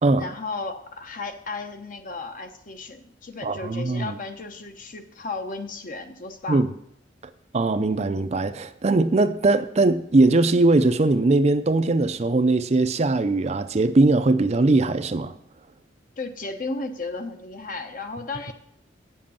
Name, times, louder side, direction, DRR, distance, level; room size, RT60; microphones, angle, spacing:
voice 1, 0.1-6.6 16.2-18.5, left 3 dB, 45° left, 1.0 m, -34 dB
voice 2, 3.4-4.2 6.5-6.7 7.5-15.3, right 2 dB, 35° right, 0.5 m, -20 dB
8.5 x 7.5 x 7.0 m
head